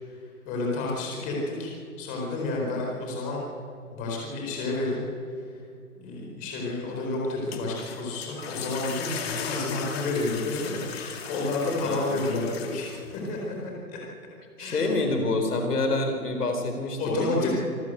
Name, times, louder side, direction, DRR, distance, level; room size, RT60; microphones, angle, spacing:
voice 1, 0.5-1.7 2.0-3.4 3.9-5.0 6.0-14.0 14.6-14.9 17.0-17.5, left 2 dB, 20° left, -1 dB, 4.3 m, -30 dB
sound 1, 7.3-13.3, left 7 dB, 40° left, 2.2 m, -37 dB
voice 2, 11.8-12.2 14.6-17.5, left 2 dB, 80° left, 4 dB, 4.3 m, -27 dB
26.5 x 13.5 x 8.0 m, 2.5 s
hypercardioid pair, 160°, 45 cm